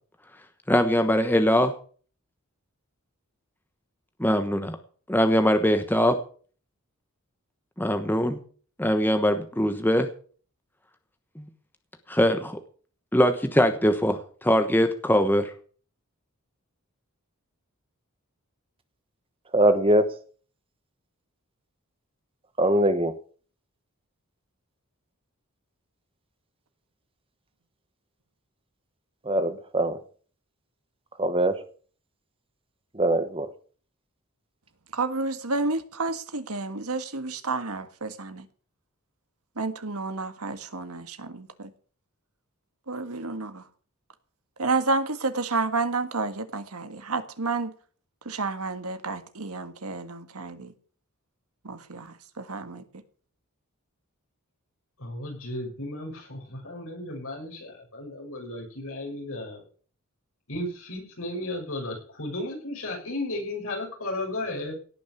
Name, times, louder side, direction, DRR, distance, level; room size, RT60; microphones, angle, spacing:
voice 1, 0.7-1.7 4.2-4.8 5.1-6.2 7.8-8.4 8.8-10.1 11.4-11.5 12.1-12.6 13.1-15.5, equal, 10° left, 1.1 m, -22 dB
voice 2, 19.5-20.1 22.6-23.1 29.2-30.0 31.2-31.6 32.9-33.5, right 1 dB, 25° right, 1.2 m, -22 dB
voice 3, 34.9-38.4 39.6-41.7 42.9-43.6 44.6-47.7 48.2-50.7 51.6-52.8, right 3 dB, 85° right, 1.7 m, -30 dB
voice 4, 55.0-59.6 60.5-64.7, left 1 dB, 70° left, 6.5 m, -34 dB
17.5 x 6.4 x 8.3 m
head